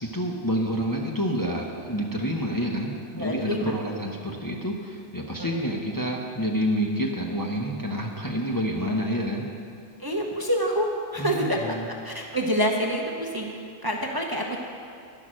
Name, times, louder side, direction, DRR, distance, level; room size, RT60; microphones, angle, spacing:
voice 1, 0.0-9.5 11.2-11.9, equal, 20° left, 0 dB, 0.9 m, -28 dB
voice 2, 3.2-3.7 5.4-5.6 10.0-11.7 12.0-13.5 13.8-14.6, equal, 20° right, 0 dB, 0.9 m, -27 dB
11.0 x 10.5 x 6.3 m, 2.4 s
omnidirectional pair, 1.2 m